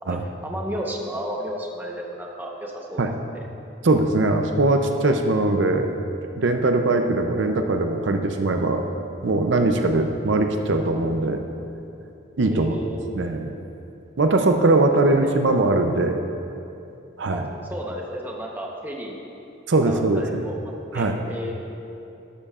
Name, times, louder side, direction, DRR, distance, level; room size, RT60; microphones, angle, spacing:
voice 1, 0.0-3.0 12.5-13.2 14.9-15.3 17.3-17.4 17.7-19.2 19.9-21.5, equal, 10° right, -1 dB, 1.0 m, -33 dB
voice 2, 3.8-5.9 6.4-8.9 9.2-11.4 12.4-12.8 13.1-13.5 14.2-16.2 17.2-17.5 19.7-20.4 20.9-21.2, right 2 dB, 70° right, 5 dB, 0.6 m, -21 dB
12.5 x 12.0 x 2.5 m, 2.8 s
head